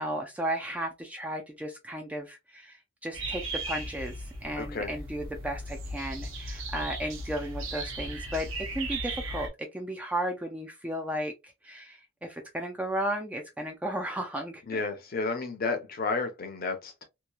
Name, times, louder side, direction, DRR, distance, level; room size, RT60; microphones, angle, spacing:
voice 1, 0.0-4.1 4.4-11.3 11.6-14.8, right 1 dB, 5° right, 0.3 m, -34 dB
sound 1, 3.1-9.5, right 2 dB, 65° right, 0.7 m, -37 dB
voice 2, 4.6-4.9 14.7-17.0, left 3 dB, 45° left, 0.7 m, -31 dB
2.8 x 2.2 x 2.3 m
head